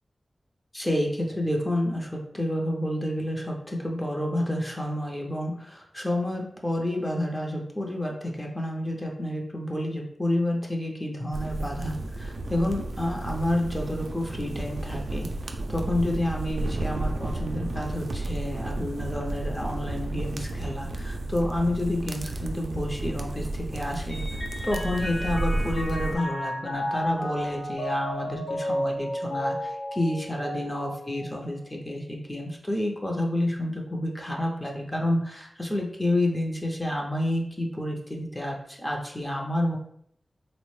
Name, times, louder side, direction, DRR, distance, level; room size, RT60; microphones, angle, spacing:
voice 1, 0.7-39.8, left 1 dB, 20° left, 0 dB, 0.5 m, -29 dB
sound 1, 11.3-26.2, right 2 dB, 80° right, 0.3 m, -32 dB
Mallet percussion, 24.1-31.8, left 1 dB, 60° left, 0.7 m, -33 dB
3.4 x 2.0 x 3.1 m, 0.67 s
wide cardioid pair, 85°, 0 cm